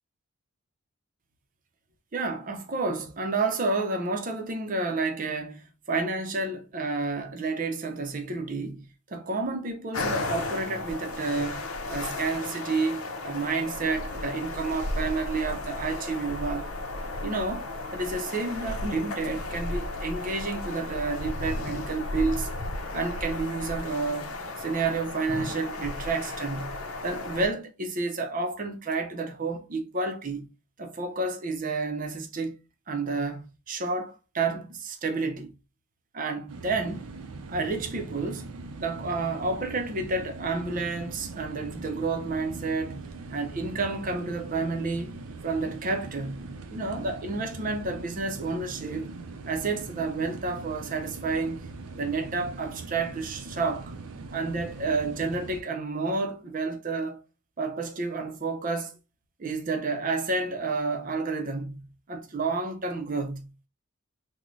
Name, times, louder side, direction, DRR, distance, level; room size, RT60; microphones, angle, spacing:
voice 1, 2.1-16.7 17.2-17.7 17.9-22.5 22.9-30.5 30.8-32.6 32.9-35.5 36.1-37.1 37.5-38.5 38.8-43.0 43.3-45.1 45.4-49.1 49.5-51.7 51.9-53.9 54.3-57.2 57.6-58.9 59.4-63.7, right 3 dB, 40° right, 0.5 m, -30 dB
sound 1, 9.9-27.4, left 2 dB, 90° left, 0.6 m, -34 dB
sound 2, 36.5-55.6, right 3 dB, 90° right, 0.5 m, -41 dB
3.8 x 2.1 x 3.0 m
head